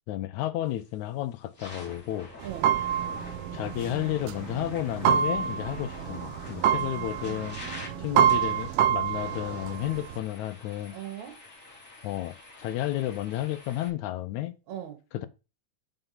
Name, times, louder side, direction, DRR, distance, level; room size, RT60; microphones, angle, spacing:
voice 1, 0.1-2.3 3.5-7.6 8.0-11.0 12.0-14.5 15.1-15.3, left 14 dB, 80° left, 2.0 m, -32 dB
sound 1, 0.7-0.9 1.4-13.9, left 2 dB, 25° left, 3.1 m, -46 dB
voice 2, 2.4-2.8 7.2-8.3 10.9-11.4 14.7-15.0, right 10 dB, 75° right, 2.6 m, -41 dB
sound 2, 2.4-10.2, right 9 dB, 90° right, 2.1 m, -27 dB
sound 3, 2.5-8.8, right 6 dB, 55° right, 2.8 m, -43 dB
5.7 x 5.6 x 5.6 m
omnidirectional pair, 3.4 m